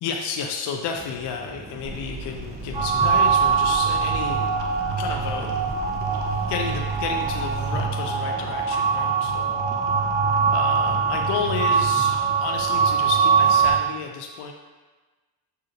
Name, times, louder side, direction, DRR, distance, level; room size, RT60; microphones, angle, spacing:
voice 1, 0.0-4.5 5.0-5.5 6.5-9.6 10.5-12.1 12.4-14.5, left 6 dB, 60° left, 2 dB, 0.6 m, -31 dB
sound 1, 0.9-13.7, equal, 5° right, 0.9 m, -40 dB
sound 2, 1.8-7.9, right 3 dB, 30° right, 0.7 m, -37 dB
sound 3, 2.7-13.8, right 6 dB, 65° right, 0.8 m, -22 dB
6.6 x 2.4 x 2.8 m, 1.3 s
supercardioid pair, 65°, 46 cm